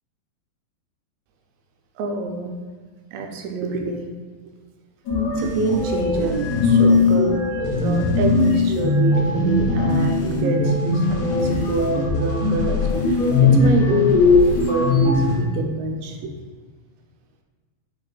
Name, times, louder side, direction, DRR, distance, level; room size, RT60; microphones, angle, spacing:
voice 1, 2.0-2.6 3.1-4.1 5.4-7.4 7.8-16.4, right 4 dB, 85° right, 2 dB, 2.3 m, -26 dB
sound 1, 5.1-15.4, left 3 dB, 65° left, 2.4 m, -19 dB
6.4 x 3.2 x 2.2 m, 1.5 s
omnidirectional pair, 4.2 m